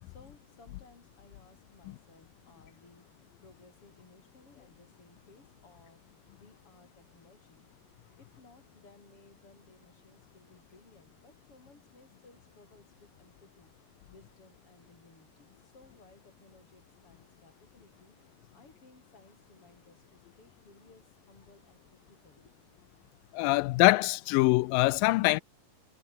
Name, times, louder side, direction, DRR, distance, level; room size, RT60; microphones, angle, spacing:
voice 1, 0.0-6.0 6.3-7.6 8.1-18.1 18.5-22.5, left 3 dB, 40° left, 7.7 m, -60 dB
voice 2, 23.3-25.4, left 21 dB, 90° left, 2.3 m, -23 dB
omnidirectional pair, 3.9 m